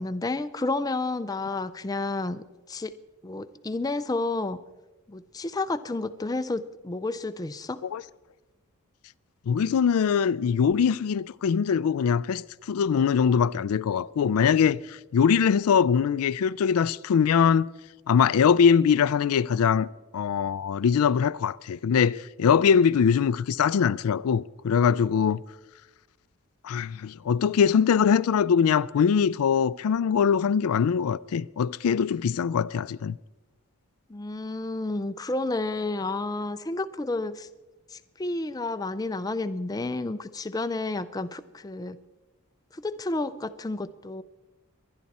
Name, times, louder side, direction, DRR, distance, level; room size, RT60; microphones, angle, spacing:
voice 1, 0.0-2.9 3.2-4.6 5.1-7.8 34.1-37.5 37.9-42.0 42.7-44.2, left 2 dB, 15° left, 0.4 m, -31 dB
voice 2, 9.5-12.4 12.7-17.7 18.1-19.9 20.1-25.4 26.6-33.2, left 7 dB, 80° left, 0.4 m, -22 dB
23.0 x 10.5 x 4.2 m
head